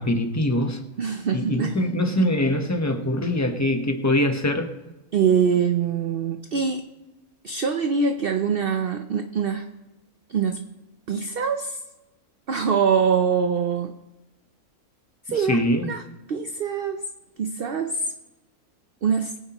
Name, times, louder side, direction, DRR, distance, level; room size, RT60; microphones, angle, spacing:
voice 1, 0.0-0.8 1.3-4.7 15.4-15.9, left 1 dB, 15° left, 5 dB, 1.0 m, -23 dB
voice 2, 1.0-1.9 5.1-6.9 7.4-9.7 10.3-10.7 11.1-11.8 12.5-13.9 15.3-15.6 15.9-16.0 16.3-17.0 17.4-18.1 19.0-19.3, right 6 dB, 50° right, 6 dB, 0.7 m, -24 dB
22.5 x 9.1 x 3.0 m, 1.1 s
omnidirectional pair, 1.5 m